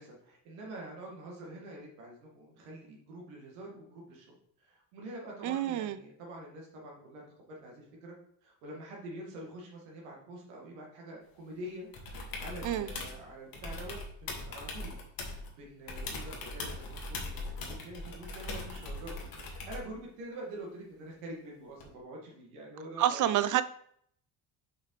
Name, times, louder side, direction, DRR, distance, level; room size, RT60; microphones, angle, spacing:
voice 1, 0.0-7.2 7.5-8.1 8.4-15.0 15.2-23.4, right 1 dB, 70° right, 2.1 m, -46 dB
voice 2, 5.4-6.0 12.6-12.9 23.0-23.6, right 11 dB, 40° right, 0.6 m, -28 dB
sound 1, 11.9-13.2 13.5-15.5 15.9-19.9 21.8-21.9, left 2 dB, 45° left, 2.1 m, -40 dB
6.7 x 5.6 x 3.3 m
figure-of-eight pair, 50°, 48 cm